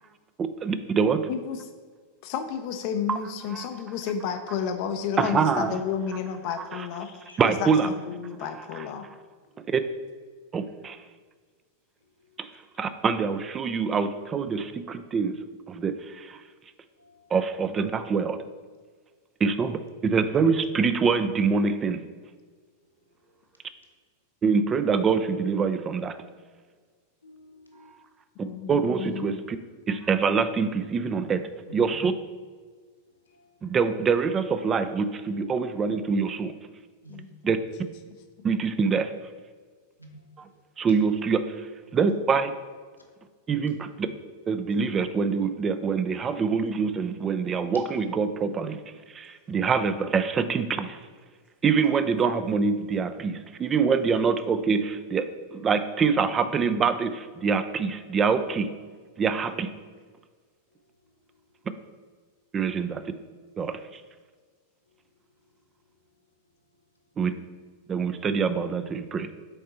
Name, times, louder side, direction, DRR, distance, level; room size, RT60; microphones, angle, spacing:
voice 1, 0.4-1.3 3.1-3.2 3.4-4.0 5.2-5.8 6.6-6.9 7.4-7.9 8.6-8.9 9.7-9.8 10.5-11.0 12.4-12.5 12.8-15.4 15.7-16.4 17.3-18.4 19.4-22.0 24.4-26.2 28.7-29.6 29.9-32.1 33.6-36.5 37.4-37.6 38.4-39.1 40.4-40.5 40.8-41.7 41.9-42.5 43.5-44.1 44.5-48.8 49.1-51.0 51.6-58.7 59.2-59.7 62.5-63.0 63.6-64.0 67.2-67.3 67.9-69.3, right 5 dB, 25° right, 11 dB, 0.4 m, -25 dB
voice 2, 1.3-1.7 2.2-9.1 28.4-29.5 37.1-37.5, left 7 dB, 45° left, 6 dB, 0.5 m, -32 dB
voice 3, 17.0-17.3 27.2-27.9 31.7-31.8 33.3-33.5 37.0-37.2 40.0-40.1, right 1 dB, 90° left, -1 dB, 1.2 m, -51 dB
6.5 x 4.3 x 4.2 m, 1.5 s
figure-of-eight pair, 90°, 0 cm